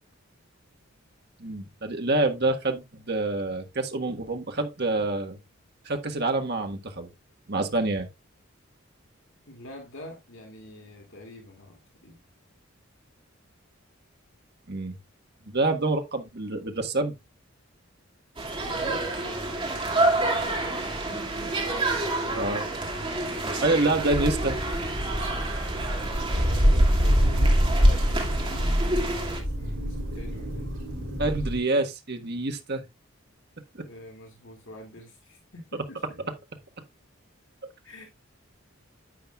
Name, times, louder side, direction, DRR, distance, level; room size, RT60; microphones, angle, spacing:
voice 1, 1.4-5.4 5.8-7.1 7.5-8.1 14.7-14.9 15.5-17.1 22.3-22.7 23.6-24.6 30.1-30.2 31.2-32.8 33.7-33.8, right 2 dB, 50° right, 1.5 m, -27 dB
voice 2, 9.5-12.2 18.6-23.0 26.3-30.7 33.8-36.2 37.8-38.1, left 1 dB, 65° left, 2.5 m, -46 dB
sound 1, 18.4-29.4, right 2 dB, 25° right, 2.2 m, -29 dB
sound 2, 24.1-31.6, equal, 75° right, 4.3 m, -24 dB
10.0 x 8.7 x 2.4 m
head